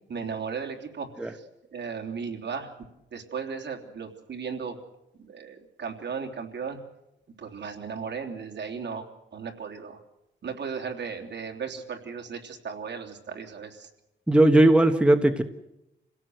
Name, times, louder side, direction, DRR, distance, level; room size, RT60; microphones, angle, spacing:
voice 1, 0.1-1.5 1.7-2.7 3.1-4.8 5.2-6.8 7.4-9.1 9.3-10.0 10.4-13.9, right 6 dB, 60° right, 2 dB, 3.3 m, -36 dB
voice 2, 14.3-15.4, right 1 dB, 5° right, 6 dB, 1.2 m, -18 dB
28.0 x 17.5 x 7.9 m, 0.91 s
wide cardioid pair, 145°, 20 cm